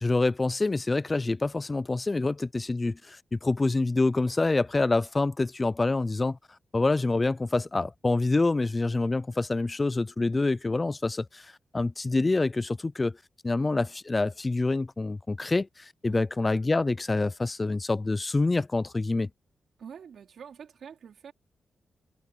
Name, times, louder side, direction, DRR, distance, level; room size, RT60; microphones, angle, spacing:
voice 1, 0.0-6.4 6.7-13.2 13.4-19.3, left 3 dB, 30° left, 0.4 m, -26 dB
voice 2, 19.8-21.3, right 7 dB, 75° right, 4.0 m, -46 dB
cardioid pair, 80°, 0 cm